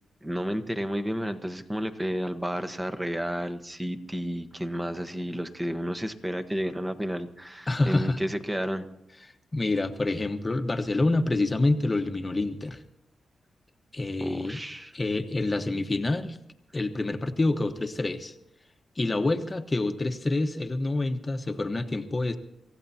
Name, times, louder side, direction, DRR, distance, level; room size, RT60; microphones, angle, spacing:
voice 1, 0.2-8.9 14.2-14.9, equal, 10° right, 9 dB, 1.2 m, -31 dB
voice 2, 7.7-8.2 9.5-12.8 13.9-14.6 14.9-16.4 16.7-18.3 19.0-22.4, left 2 dB, 25° left, 7 dB, 1.2 m, -27 dB
27.5 x 15.5 x 2.8 m, 0.85 s
cardioid pair, 80°, 0 cm